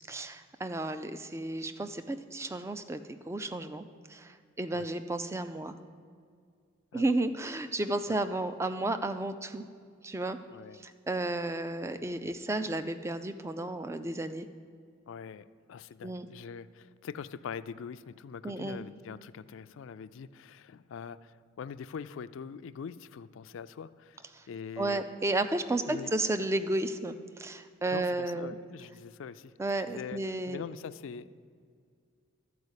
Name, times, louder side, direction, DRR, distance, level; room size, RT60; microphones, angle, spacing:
voice 1, 0.1-5.8 6.9-9.7 10.0-10.4 10.7-14.5 16.0-16.3 18.4-18.8 24.3-24.4 24.8-28.6 29.6-30.6, right 2 dB, 15° right, 10 dB, 0.3 m, -33 dB
voice 2, 10.5-10.9 15.1-25.0 25.9-26.1 27.9-30.2 30.5-31.3, left 6 dB, 70° left, 14 dB, 0.3 m, -43 dB
12.0 x 4.7 x 8.1 m, 2.2 s
head